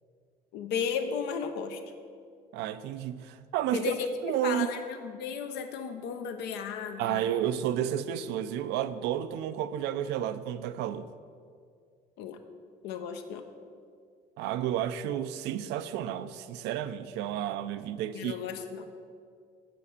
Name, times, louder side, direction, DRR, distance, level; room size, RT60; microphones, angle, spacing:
voice 1, 0.5-1.8 3.7-7.3 12.2-12.4 12.8-13.4 18.1-18.9, left 6 dB, 85° left, 0.7 m, -34 dB
voice 2, 2.5-4.0 4.2-4.7 7.0-11.1 14.4-18.4, right 11 dB, 85° right, 0.4 m, -31 dB
7.5 x 4.2 x 6.6 m
cardioid pair, 110°, 17 cm